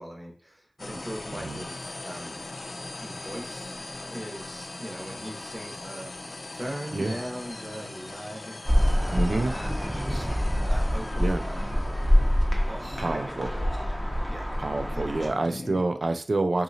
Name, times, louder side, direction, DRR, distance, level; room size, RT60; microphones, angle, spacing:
voice 1, 0.0-2.4 3.0-3.8 4.1-11.8 12.7-13.8 14.2-14.5 14.9-15.4, equal, 30° right, 0 dB, 1.1 m, -40 dB
sound 1, 0.8-15.8, left 2 dB, 75° left, 0.4 m, -41 dB
voice 2, 1.3-1.6 6.9-7.2 9.1-9.5 11.2-11.4 13.0-13.5 14.6-16.6, right 2 dB, 80° right, 8 dB, 0.3 m, -27 dB
sound 2, 8.7-15.3, equal, ahead, 0.8 m, -25 dB
3.7 x 2.8 x 2.7 m, 0.41 s
wide cardioid pair, 45°, 0 cm